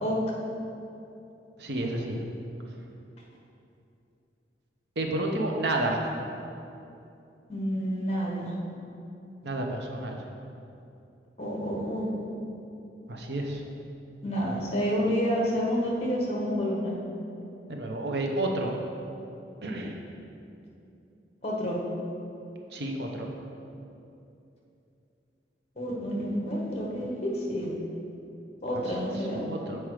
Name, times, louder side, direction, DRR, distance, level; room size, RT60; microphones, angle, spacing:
voice 1, 1.6-2.2 5.0-6.0 9.4-10.2 13.1-13.6 17.7-18.7 19.6-19.9 22.7-23.3 29.5-29.8, right 1 dB, 65° right, 1 dB, 0.8 m, -30 dB
voice 2, 7.5-8.5 11.4-12.1 14.2-16.9 21.4-21.8 25.7-27.7 28.6-29.4, equal, 35° left, -3 dB, 1.3 m, -29 dB
7.4 x 4.6 x 4.9 m, 2.7 s
head